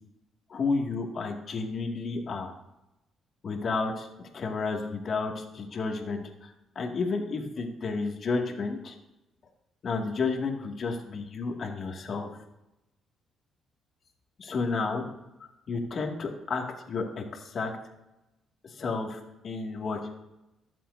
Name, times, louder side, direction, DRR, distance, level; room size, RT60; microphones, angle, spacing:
voice 1, 0.5-2.5 3.4-4.1 4.3-8.9 9.8-12.3 14.4-15.0 15.7-17.7 18.6-20.0, left 4 dB, 50° left, 2 dB, 2.1 m, -31 dB
22.0 x 7.5 x 2.7 m, 0.93 s
cardioid pair, 90°, 0 cm